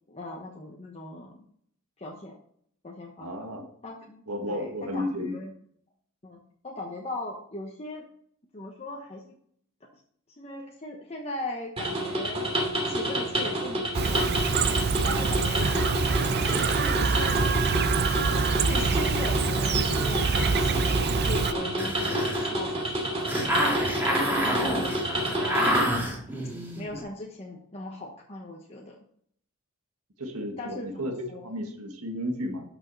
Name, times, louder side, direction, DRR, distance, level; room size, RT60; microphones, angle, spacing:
voice 1, 0.1-1.4 2.0-2.3 2.8-3.4 3.8-5.5 6.2-8.1 8.5-9.4 10.4-12.5 12.8-14.2 15.0-15.7 16.1-17.8 18.6-23.1 24.1-25.8 26.8-29.0 30.6-31.5, left 2 dB, 30° left, -1 dB, 1.1 m, -39 dB
voice 2, 3.2-3.7 4.3-5.3 30.2-32.6, left 1 dB, 80° right, 3 dB, 1.6 m, -33 dB
sound 1, 11.8-25.8, right 1 dB, 25° right, 2.6 m, -29 dB
Chirp tweet, 13.9-21.5, right 4 dB, 50° right, 0.6 m, -25 dB
sound 2, 21.8-27.0, equal, 10° right, 2.7 m, -28 dB
11.5 x 6.3 x 4.1 m, 0.66 s
head